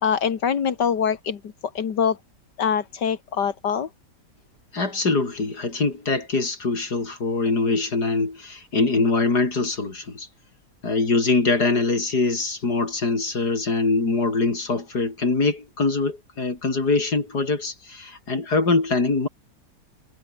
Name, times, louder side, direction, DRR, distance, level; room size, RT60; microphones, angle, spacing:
voice 1, 0.0-1.4 1.7-2.2 2.6-3.9, left 7 dB, 85° left, 2.3 m, -23 dB
voice 2, 4.7-10.3 10.8-19.3, left 3 dB, 70° left, 4.9 m, -23 dB
omnidirectional pair, 1.8 m